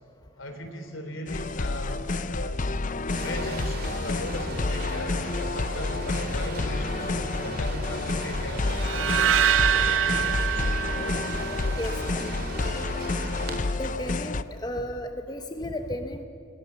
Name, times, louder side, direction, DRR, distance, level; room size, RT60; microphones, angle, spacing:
voice 1, 0.4-2.7 3.2-7.1 7.4-9.6 9.9-10.4, left 1 dB, 75° left, 7 dB, 3.6 m, -38 dB
sound 1, 1.3-14.4, left 3 dB, 40° left, 0.6 m, -29 dB
sound 2, 3.1-13.6, right 1 dB, 50° right, 3.5 m, -37 dB
sound 3, 8.8-12.0, right 10 dB, 70° right, 0.5 m, -25 dB
voice 2, 13.8-16.3, left 1 dB, 20° left, 6 dB, 1.0 m, -33 dB
28.5 x 21.5 x 7.1 m, 2.6 s
head